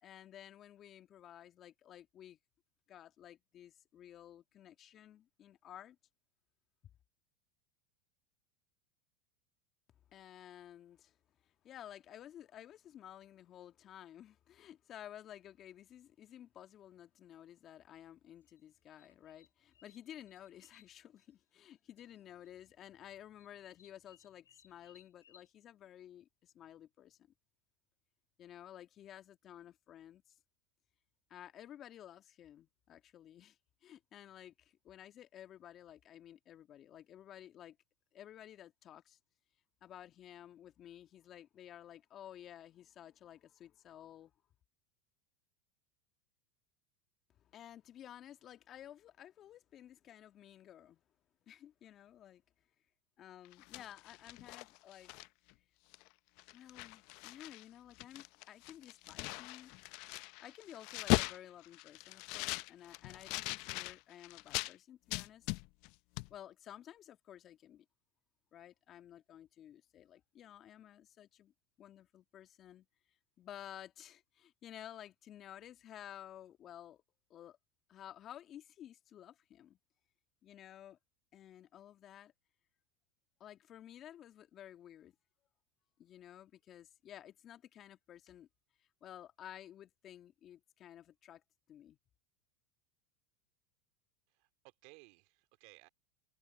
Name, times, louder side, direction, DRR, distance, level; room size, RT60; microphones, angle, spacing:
voice 1, 0.0-2.4 2.9-6.0 10.1-11.2 11.4-27.2 28.4-30.4 31.3-37.8 38.1-39.2 39.8-44.3 47.4-51.0 51.5-52.4 53.2-55.2 56.5-59.7 60.4-65.5 66.3-67.9 68.5-71.5 71.8-72.9 73.4-77.0 77.3-77.6 77.9-79.8 80.4-81.0 81.3-82.3 83.4-85.2 86.0-88.5 88.8-91.4 91.7-92.0, left 11 dB, 40° left, 1.9 m, -54 dB
sound 1, 18.4-21.7 22.0-22.5 22.8-25.5, left 8 dB, 90° left, 2.0 m, -67 dB
sound 2, 53.4-55.5 55.9-56.1 56.4-57.6 57.9-64.7 65.1-65.9 66.2-66.3, left 25 dB, 60° left, 0.7 m, -39 dB
voice 2, 94.3-95.9, right 30 dB, 60° right, 2.7 m, -60 dB
hypercardioid pair, 90°, 0 cm